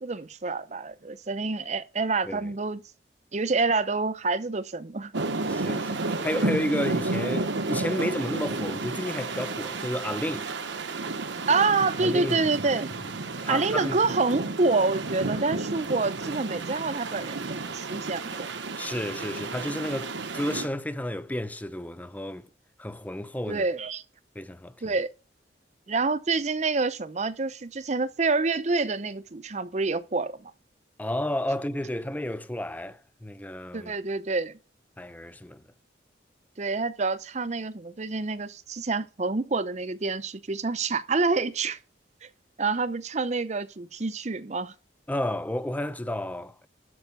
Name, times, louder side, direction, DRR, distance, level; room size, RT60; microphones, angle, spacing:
voice 1, 0.0-2.8 3.3-5.1 11.5-12.9 13.5-18.5 23.5-24.0 24.8-25.1 25.9-30.5 33.7-34.5 36.6-41.8 42.2-42.3 42.6-44.7, right 3 dB, 40° right, 0.6 m, -27 dB
sound 1, 5.1-20.7, right 3 dB, 90° right, 1.1 m, -32 dB
voice 2, 5.5-10.5 12.0-12.4 13.4-14.0 18.8-22.5 22.8-23.6 24.4-24.7 31.0-33.9 35.0-35.6 45.1-46.7, left 1 dB, 10° left, 0.5 m, -31 dB
12.5 x 5.5 x 5.6 m
head